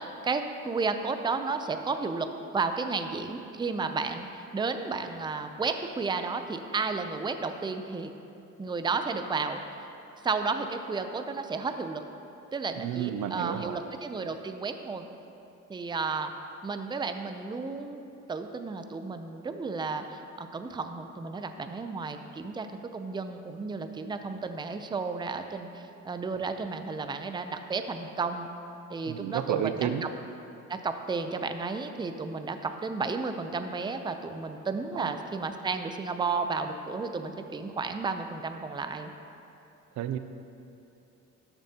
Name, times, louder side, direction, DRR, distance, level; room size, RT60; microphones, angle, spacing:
voice 1, 0.0-8.1 8.6-9.6 10.2-12.0 12.5-15.1 15.7-16.3 16.6-28.5 28.9-30.1 30.7-39.1, right 4 dB, 15° right, 8 dB, 0.5 m, -33 dB
voice 2, 12.8-13.8 29.1-30.0 35.0-35.1 40.0-40.2, right 10 dB, 75° right, 9 dB, 0.5 m, -31 dB
13.0 x 7.0 x 2.8 m, 2.7 s
cardioid pair, 90°, 30 cm